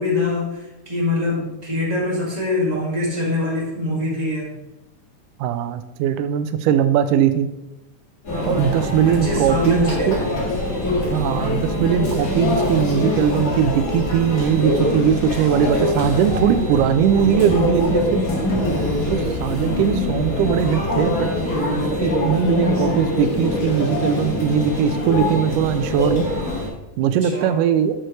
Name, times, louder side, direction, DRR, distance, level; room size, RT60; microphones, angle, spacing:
voice 1, 0.0-4.6 8.3-8.8 9.0-10.3 27.1-27.6, left 2 dB, 15° right, -4 dB, 1.6 m, -24 dB
voice 2, 5.4-7.5 8.5-10.2 11.1-18.2 19.1-21.3 22.0-26.3 27.0-27.9, right 8 dB, 85° right, 10 dB, 2.1 m, -20 dB
Conversation / Chatter / Crowd, 8.2-26.7, left 1 dB, 30° left, 2.2 m, -23 dB
11.0 x 6.2 x 3.2 m, 0.96 s
omnidirectional pair, 3.7 m